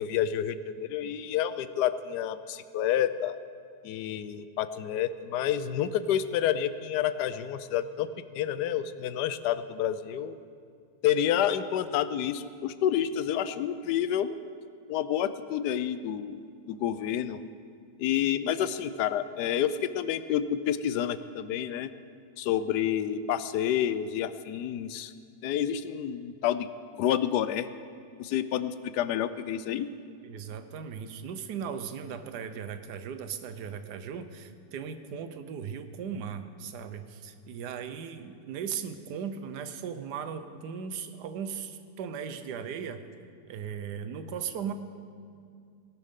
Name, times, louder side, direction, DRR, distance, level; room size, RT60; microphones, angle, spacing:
voice 1, 0.0-3.4 3.8-10.4 11.0-14.3 14.9-17.4 18.0-21.9 22.4-25.1 25.4-26.7 27.0-27.7 28.2-29.9, left 10 dB, 90° left, 13 dB, 1.2 m, -29 dB
voice 2, 30.2-43.0 43.5-44.7, right 7 dB, 85° right, 10 dB, 1.3 m, -37 dB
18.0 x 12.0 x 3.7 m, 2.3 s
omnidirectional pair, 1.7 m